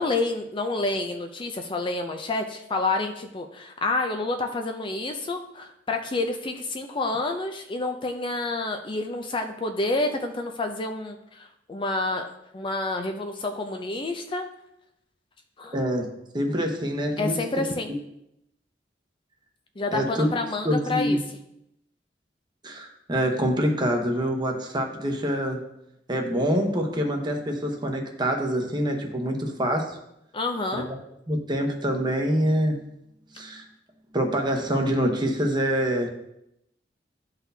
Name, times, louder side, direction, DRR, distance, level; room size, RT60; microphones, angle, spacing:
voice 1, 0.0-12.3 12.5-14.5 15.6-15.8 17.2-17.9 19.8-21.2 30.3-30.9, left 2 dB, 30° left, 4 dB, 0.4 m, -28 dB
voice 2, 15.7-16.1 16.3-17.6 19.9-20.3 20.6-21.2 22.6-25.6 26.1-30.0 30.9-31.0 31.3-32.8 33.3-33.6 34.1-36.1, equal, 25° right, 2 dB, 1.0 m, -25 dB
12.0 x 4.0 x 2.7 m, 0.82 s
head